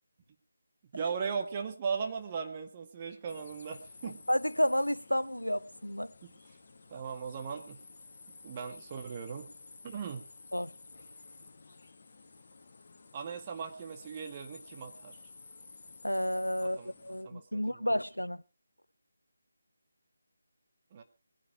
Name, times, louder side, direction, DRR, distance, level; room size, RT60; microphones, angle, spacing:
voice 1, 0.9-4.2 6.2-6.5 6.9-7.8 8.4-9.5 9.8-10.3 13.1-15.2 16.6-17.9 20.9-21.0, right 6 dB, 25° right, 1.8 m, -38 dB
sound 1, 3.3-17.2, left 3 dB, 40° left, 1.8 m, -53 dB
voice 2, 4.3-6.1 10.5-10.7 16.0-18.4, equal, 85° left, 0.7 m, -31 dB
21.0 x 10.0 x 4.4 m
figure-of-eight pair, 155°, 0 cm